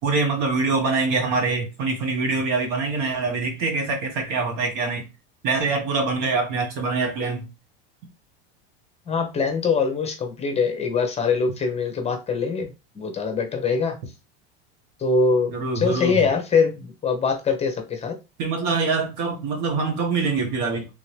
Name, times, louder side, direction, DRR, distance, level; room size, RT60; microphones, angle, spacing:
voice 1, 0.0-5.1 5.4-7.5 15.5-16.2 18.4-20.9, right 4 dB, 60° right, 1.5 m, -24 dB
voice 2, 9.1-14.0 15.0-18.1, left 5 dB, 20° left, 0.9 m, -23 dB
3.6 x 2.8 x 3.3 m
supercardioid pair, 125°, 29 cm